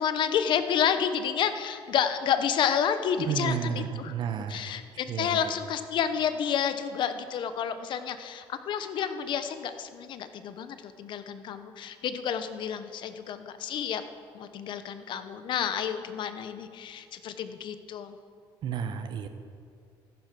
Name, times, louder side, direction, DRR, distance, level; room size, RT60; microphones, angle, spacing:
voice 1, 0.0-4.1 4.5-14.0 14.3-18.2, left 8 dB, 55° left, 10 dB, 0.9 m, -30 dB
voice 2, 3.2-4.8 5.1-5.5 18.6-19.3, right 7 dB, 55° right, 8 dB, 1.0 m, -32 dB
14.0 x 10.5 x 6.1 m, 2.3 s
cardioid pair, 135°, 10 cm